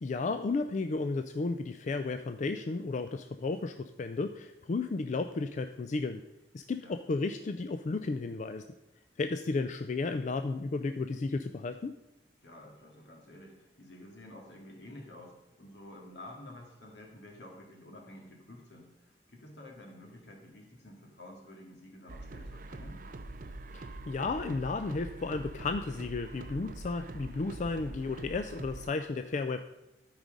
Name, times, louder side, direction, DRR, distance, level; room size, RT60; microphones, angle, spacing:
voice 1, 0.0-6.2 6.5-8.6 9.2-11.9 23.7-29.6, left 3 dB, 45° left, 8 dB, 0.4 m, -33 dB
voice 2, 12.4-23.0, left 1 dB, 80° left, 0 dB, 2.3 m, -50 dB
sound 1, 22.1-28.9, right 2 dB, 50° right, 0.5 m, -44 dB
12.5 x 4.8 x 5.3 m, 0.92 s
head